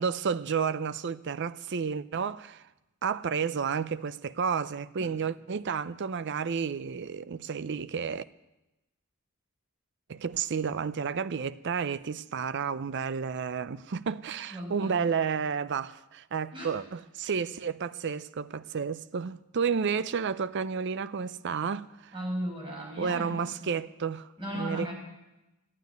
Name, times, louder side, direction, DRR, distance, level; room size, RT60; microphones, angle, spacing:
voice 1, 0.0-2.7 3.0-8.2 10.1-22.1 23.0-24.3 24.5-24.9, right 6 dB, 55° right, 0.5 m, -31 dB
voice 2, 14.5-15.0 16.5-16.7 22.1-23.8 24.4-24.9, equal, 25° right, 5.8 m, -36 dB
15.0 x 9.6 x 9.3 m
head